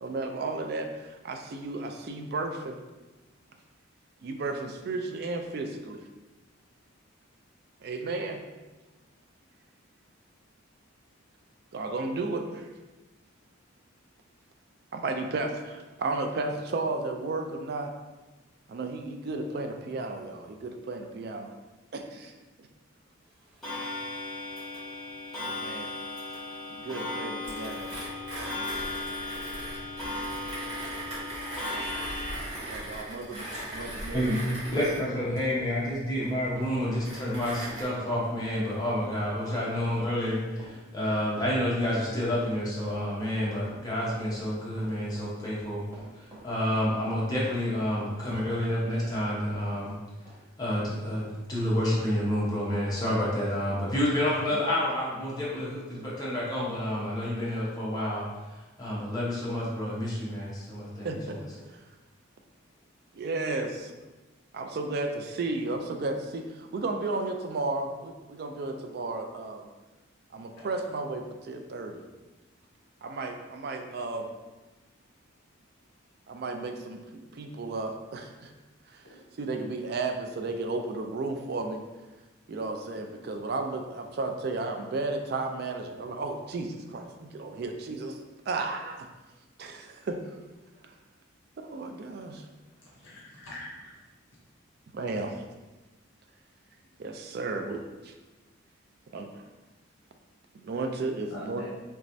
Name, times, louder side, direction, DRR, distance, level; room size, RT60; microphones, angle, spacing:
voice 1, 0.0-2.8 4.2-6.0 7.8-8.4 11.7-12.7 14.9-17.9 18.7-21.5 21.9-22.3 25.4-25.9 26.8-27.9 32.6-33.5 33.7-34.4 34.7-34.9 54.5-54.6 61.0-61.4 63.1-63.9 64.5-69.7 70.3-72.0 73.0-74.3 76.3-78.5 78.9-81.8 82.5-88.2 88.5-89.1 89.6-90.3 91.6-92.4 94.9-95.3 97.0-98.1 99.1-99.3 100.6-101.6, right 3 dB, 50° right, 5 dB, 0.3 m, -33 dB
Clock, 23.6-32.4, left 2 dB, ahead, 1.1 m, -36 dB
Mechanisms, 27.4-37.8, right 1 dB, 75° right, 1.3 m, -39 dB
voice 2, 33.6-34.4 34.7-45.8 46.1-49.9 50.6-61.1, left 1 dB, 20° left, -7 dB, 0.9 m, -29 dB
Run, 34.9-50.9 51.2-51.4 51.9-52.0, right 1 dB, 15° right, 0.8 m, -49 dB
voice 3, 92.7-94.0 101.3-101.6, left 1 dB, 65° left, -6 dB, 0.7 m, -44 dB
3.3 x 3.1 x 2.6 m, 1.2 s
head